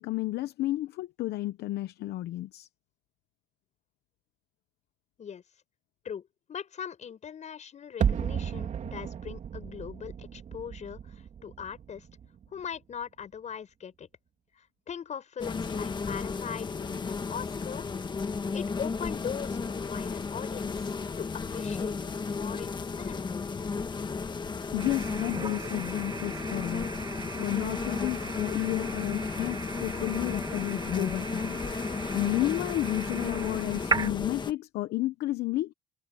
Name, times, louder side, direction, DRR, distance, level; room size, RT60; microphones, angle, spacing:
voice 1, 0.0-2.7 24.7-26.9 27.4-31.6 32.1-35.7, left 16 dB, 75° left, 0.9 m, -31 dB
voice 2, 6.0-12.1 12.5-14.1 14.5-17.9 18.5-23.3, left 7 dB, 45° left, 6.6 m, -40 dB
sound 1, 8.0-12.9 13.2-13.3, right 8 dB, 45° right, 3.0 m, -34 dB
sound 2, 15.4-34.5, left 4 dB, 25° left, 1.5 m, -34 dB
sound 3, 24.8-34.1, right 5 dB, 25° right, 1.4 m, -37 dB
cardioid pair, 110°, 17 cm